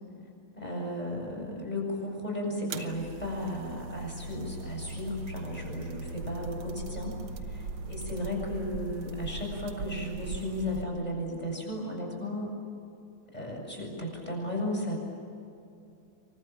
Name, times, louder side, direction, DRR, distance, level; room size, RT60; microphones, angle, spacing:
voice 1, 0.6-7.1 7.5-12.5 13.3-15.0, left 1 dB, 20° left, 0 dB, 7.5 m, -35 dB
sound 1, 2.7-10.8, right 3 dB, 85° right, 2.2 m, -39 dB
28.5 x 24.5 x 7.5 m, 2.6 s
omnidirectional pair, 2.2 m